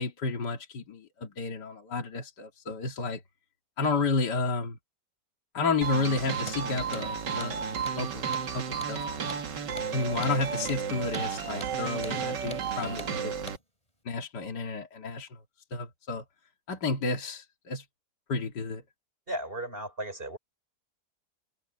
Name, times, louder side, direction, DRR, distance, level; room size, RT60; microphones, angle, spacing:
voice 1, 0.0-3.2 3.8-4.8 5.5-7.6 7.9-9.2 9.9-13.5 14.1-15.4 15.7-16.2 16.7-17.9 18.3-18.8, left 3 dB, 75° left, 2.6 m, -31 dB
sound 1, 5.8-13.6, right 6 dB, 90° right, 2.2 m, -33 dB
Hammer, 6.4-6.6 6.9-7.1 7.4-7.5 7.9-8.0 8.3-8.5 8.8-9.0 9.3-9.4 9.8-9.9 10.2-10.4 10.7-10.8 11.1-11.3 11.6-11.8 12.0-12.2 12.5-12.7 13.0-13.1 13.5-13.6, equal, 20° left, 8.0 m, -43 dB
voice 2, 19.3-20.4, right 1 dB, 30° right, 5.9 m, -35 dB
omnidirectional pair, 1.8 m